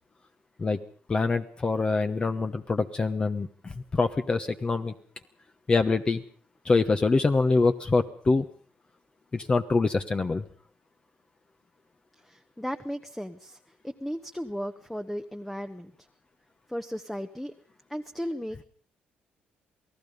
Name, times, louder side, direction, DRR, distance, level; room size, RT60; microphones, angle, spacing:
voice 1, 1.1-4.9 5.7-6.2 6.6-8.4 9.3-10.4, left 3 dB, 30° left, 8 dB, 1.1 m, -25 dB
voice 2, 12.2-13.6 13.8-15.9 16.7-17.5 17.9-18.6, equal, 5° left, 8 dB, 1.1 m, -35 dB
28.0 x 17.5 x 5.3 m, 0.43 s
cardioid pair, 100°, 3 cm